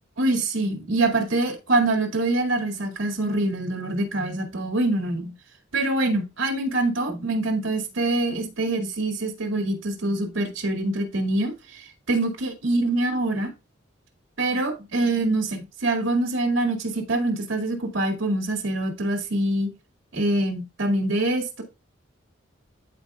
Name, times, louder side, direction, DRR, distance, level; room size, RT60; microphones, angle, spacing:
voice 1, 0.2-5.3 5.7-11.5 12.1-13.5 14.4-19.7 20.1-21.6, right 2 dB, 80° right, 2.1 m, -25 dB
13.5 x 4.6 x 2.3 m
head